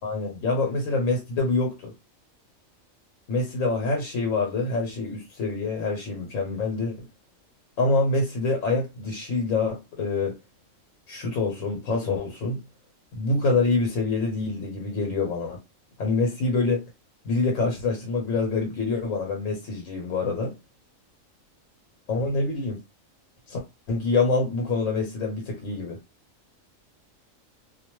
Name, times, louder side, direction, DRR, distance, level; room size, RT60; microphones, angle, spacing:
voice 1, 0.0-1.9 3.3-7.1 7.8-10.4 11.1-12.6 13.1-15.6 16.0-16.8 17.2-20.5 22.1-22.8 23.5-23.6 23.9-26.0, left 3 dB, 80° left, 1.1 m, -26 dB
2.4 x 2.2 x 2.9 m
omnidirectional pair, 1.4 m